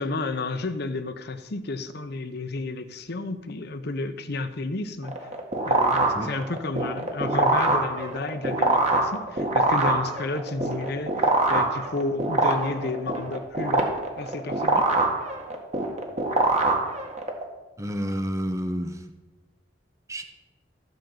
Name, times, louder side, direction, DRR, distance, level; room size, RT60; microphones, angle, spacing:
voice 1, 0.0-5.1 5.7-14.9, left 3 dB, 60° left, 10 dB, 0.9 m, -32 dB
sound 1, 5.0-17.4, right 2 dB, 40° right, 1.9 m, -24 dB
voice 2, 17.8-19.1 20.1-20.2, equal, 15° right, 7 dB, 0.7 m, -29 dB
15.0 x 5.3 x 7.9 m, 1.2 s
head